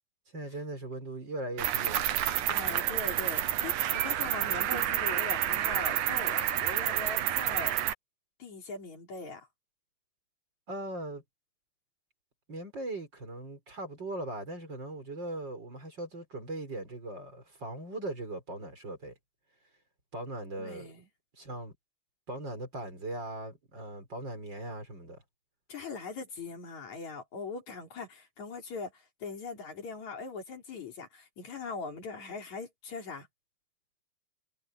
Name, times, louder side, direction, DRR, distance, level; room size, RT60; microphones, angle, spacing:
voice 1, 0.3-2.0 10.7-11.2 12.5-19.1 20.1-20.9 21.4-21.7 22.3-25.2, right 1 dB, 35° right, 5.2 m, -39 dB
Cricket, 1.6-7.9, right 12 dB, 75° right, 2.6 m, -29 dB
voice 2, 2.5-7.8 8.4-9.5 20.6-21.1 25.7-33.3, left 4 dB, 60° left, 5.3 m, -41 dB
omnidirectional pair, 3.7 m